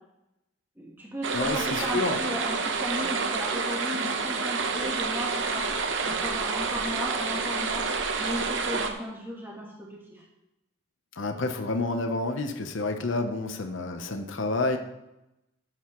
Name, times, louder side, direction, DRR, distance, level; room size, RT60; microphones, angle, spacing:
voice 1, 0.8-5.8 6.0-7.9 8.2-10.2, equal, 10° right, -2 dB, 1.4 m, -36 dB
sound 1, 1.2-8.9, right 4 dB, 70° right, 0.9 m, -29 dB
voice 2, 1.3-2.2 11.2-14.8, left 2 dB, 75° left, 6 dB, 0.9 m, -29 dB
13.0 x 7.9 x 3.1 m, 0.91 s
head